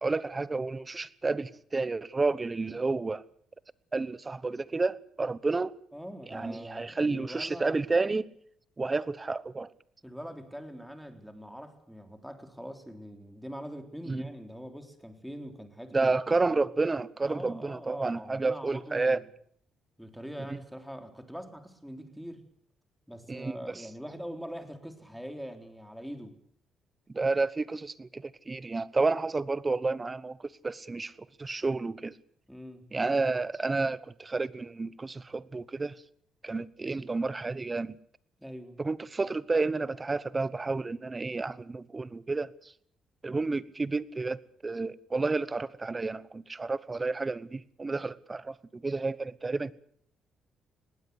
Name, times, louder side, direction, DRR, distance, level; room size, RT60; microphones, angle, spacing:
voice 1, 0.0-3.2 3.9-5.7 6.3-8.2 8.8-9.7 14.1-14.2 15.9-19.2 20.5-20.6 23.3-23.6 27.1-31.1 31.4-32.1 32.9-35.9 36.4-38.0 38.8-42.7 43.2-49.7, right 3 dB, 25° right, 18 dB, 1.0 m, -30 dB
voice 2, 5.9-7.8 10.0-16.6 17.2-19.3 20.0-22.4 23.1-26.4 32.5-32.8 38.4-38.8 43.6-43.7, equal, ahead, 6 dB, 3.7 m, -43 dB
20.5 x 16.5 x 8.1 m, 0.64 s
cardioid pair, 90°, 0 cm